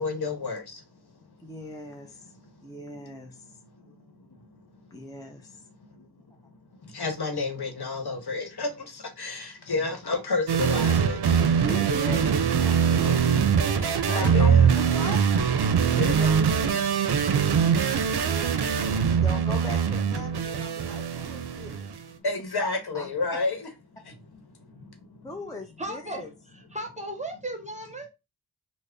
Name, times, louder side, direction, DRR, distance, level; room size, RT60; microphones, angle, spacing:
voice 1, 0.0-1.6 2.3-4.9 5.5-11.5 13.0-13.2 13.8-14.8 15.7-16.3 22.2-25.3, left 3 dB, 70° left, 0.9 m, -33 dB
voice 2, 1.4-2.3 2.6-3.5 4.9-5.6 11.5-13.1 14.0-15.5 16.2-16.3 16.7-16.8 19.1-21.9 22.6-22.7 22.9-23.1 23.3-23.4 25.2-26.3, left 1 dB, 10° left, 0.5 m, -39 dB
sound 1, 10.5-22.0, right 7 dB, 75° right, 0.5 m, -23 dB
voice 3, 25.8-26.2 26.7-28.1, right 1 dB, 20° right, 1.0 m, -35 dB
3.3 x 2.0 x 3.7 m
wide cardioid pair, 55°, 39 cm